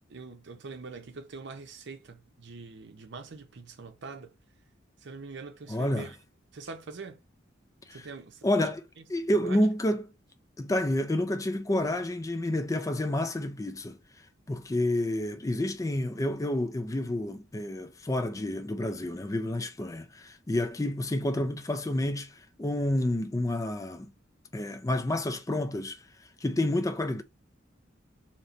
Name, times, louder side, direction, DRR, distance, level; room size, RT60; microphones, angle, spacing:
voice 1, 0.1-4.3 5.0-6.2 6.5-7.2 7.9-8.5 9.3-9.6, right 4 dB, 65° right, 0.7 m, -43 dB
voice 2, 5.7-6.1 7.9-8.0 8.4-8.8 9.1-10.1 10.6-14.0 14.5-22.3 22.6-24.1 24.5-26.0 26.4-27.2, left 1 dB, 15° left, 0.4 m, -29 dB
3.1 x 2.9 x 2.7 m
head